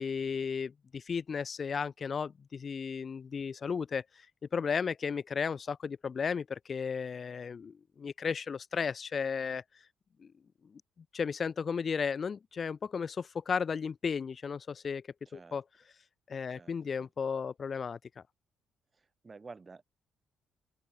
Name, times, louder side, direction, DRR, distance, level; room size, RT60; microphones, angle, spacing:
voice 1, 0.0-4.0 4.5-9.6 10.2-10.3 11.1-15.0 15.3-15.6 16.3-18.0, left 6 dB, 40° left, 0.3 m, -34 dB
voice 2, 15.3-15.6 16.5-16.7 17.0-17.1 18.9-19.8, right 4 dB, 30° right, 2.4 m, -51 dB
open air
cardioid pair, 90°, 0 cm